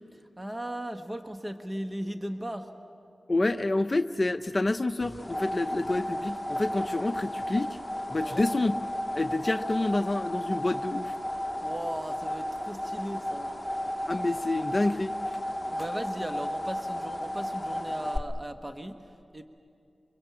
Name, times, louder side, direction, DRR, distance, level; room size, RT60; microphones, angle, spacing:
voice 1, 0.4-2.7 8.2-8.5 11.6-13.5 15.7-19.4, right 1 dB, 20° right, 6 dB, 1.4 m, -37 dB
voice 2, 3.3-7.8 8.1-8.7 9.1-11.1 14.1-15.1, left 2 dB, 40° left, 9 dB, 0.6 m, -28 dB
sound 1, 5.0-18.2, left 1 dB, 10° left, 1.6 m, -33 dB
24.5 x 22.5 x 8.6 m, 2.5 s
cardioid pair, 45°, 0 cm